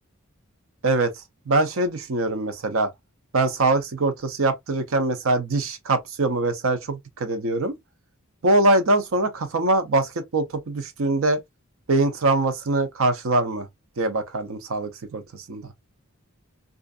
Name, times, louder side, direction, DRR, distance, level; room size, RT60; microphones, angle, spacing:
voice 1, 1.5-2.9 3.3-7.7 8.4-11.4 11.9-13.7 14.0-15.7, right 2 dB, 70° right, 0.6 m, -23 dB
2.5 x 2.4 x 2.3 m
head